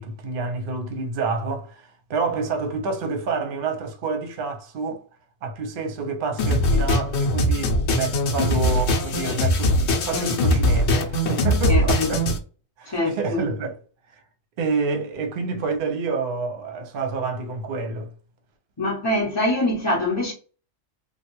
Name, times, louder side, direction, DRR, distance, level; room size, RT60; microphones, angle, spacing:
voice 1, 0.0-5.0 5.4-12.2 12.8-13.8 14.6-18.1, right 4 dB, 50° right, 0.8 m, -28 dB
sound 1, 6.4-12.4, left 1 dB, 65° left, 0.9 m, -21 dB
voice 2, 11.7-12.2 12.9-13.4 18.8-20.3, left 1 dB, 25° left, 0.6 m, -24 dB
3.4 x 2.3 x 3.0 m
omnidirectional pair, 1.3 m